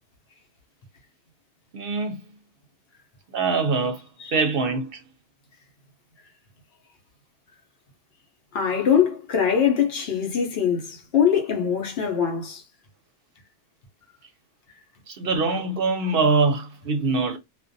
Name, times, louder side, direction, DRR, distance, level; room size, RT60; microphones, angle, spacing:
voice 1, 1.7-2.2 3.3-4.0 4.3-5.0 15.1-17.4, right 4 dB, 60° right, 0.7 m, -23 dB
voice 2, 8.5-12.6, left 8 dB, 70° left, 0.9 m, -22 dB
2.4 x 2.2 x 2.5 m
omnidirectional pair, 1.2 m